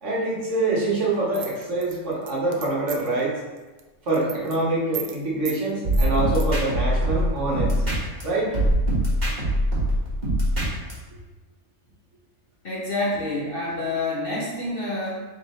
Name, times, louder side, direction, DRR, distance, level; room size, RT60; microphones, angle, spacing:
voice 1, 0.0-3.4 4.1-7.8 8.2-8.5, right 2 dB, 60° right, -5 dB, 1.4 m, -25 dB
sound 1, 1.3-3.2 3.6-3.8 4.1-4.6 4.9-5.2 5.4-5.6 5.9-6.5, right 9 dB, 75° right, 0.5 m, -36 dB
sound 2, 5.8-8.2 8.5-10.9, equal, 35° right, 1.4 m, -22 dB
voice 2, 12.6-15.3, left 2 dB, 45° left, -6 dB, 0.9 m, -28 dB
3.8 x 3.3 x 4.2 m, 1.2 s
omnidirectional pair, 1.5 m